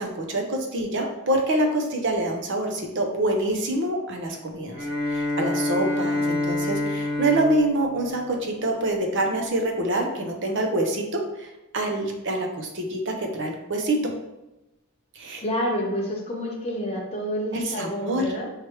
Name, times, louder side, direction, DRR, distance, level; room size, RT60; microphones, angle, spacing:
voice 1, 0.0-4.8 5.1-11.5 11.7-14.1 15.2-15.4 17.5-18.2, right 1 dB, 55° right, 3 dB, 0.7 m, -26 dB
Bowed string instrument, 4.7-9.1, left 2 dB, 10° right, 0.9 m, -28 dB
voice 2, 15.4-18.5, equal, 25° left, -2 dB, 0.8 m, -29 dB
5.0 x 3.1 x 3.0 m, 0.96 s
head